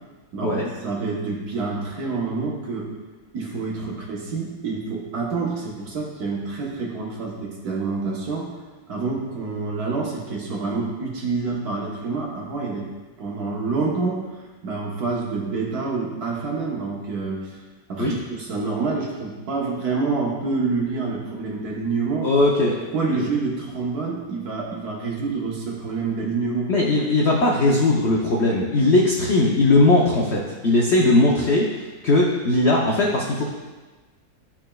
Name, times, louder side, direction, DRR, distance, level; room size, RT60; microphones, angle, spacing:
voice 1, 0.3-2.9 3.3-8.5 8.9-12.9 13.2-14.2 14.6-17.5 17.9-22.3 22.9-26.7, right 4 dB, 60° right, -3 dB, 1.5 m, -27 dB
voice 2, 22.2-22.8 23.1-23.3 26.7-31.7 32.0-33.5, left 2 dB, 90° left, -2 dB, 0.5 m, -19 dB
11.0 x 4.3 x 2.3 m, 1.3 s
omnidirectional pair, 2.0 m